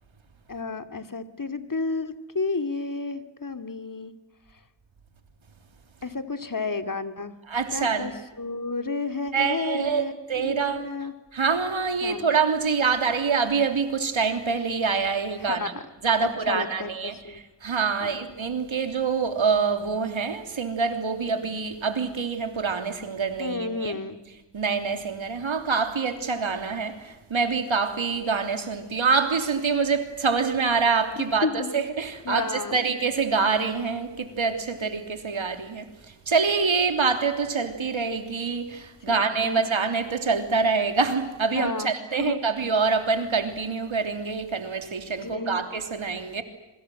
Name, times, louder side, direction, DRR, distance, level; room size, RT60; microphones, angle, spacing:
voice 1, 0.5-4.1 6.0-7.3 7.7-8.1 8.4-11.1 12.0-12.3 15.4-15.8 16.2-17.4 18.0-18.1 23.4-24.2 31.2-31.7 32.2-32.8 39.1-39.7 41.5-41.9 42.2-42.4 45.2-45.6, left 3 dB, 45° left, 2.8 m, -31 dB
voice 2, 7.5-8.1 9.3-10.9 11.3-15.7 16.0-24.0 24.5-46.4, right 5 dB, 85° right, 3.3 m, -26 dB
27.0 x 24.5 x 7.8 m
cardioid pair, 45°, 46 cm